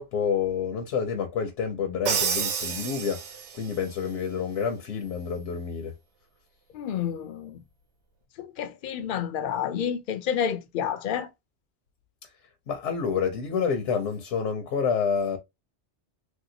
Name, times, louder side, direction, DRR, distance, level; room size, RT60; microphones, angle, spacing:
voice 1, 0.0-3.2 3.5-5.9 12.7-15.4, left 6 dB, 80° left, 0.9 m, -28 dB
Crash cymbal, 2.1-3.7, right 6 dB, 75° right, 1.0 m, -29 dB
voice 2, 6.7-7.6 8.4-11.3, left 8 dB, 60° left, 0.6 m, -29 dB
3.2 x 2.8 x 2.6 m
omnidirectional pair, 1.2 m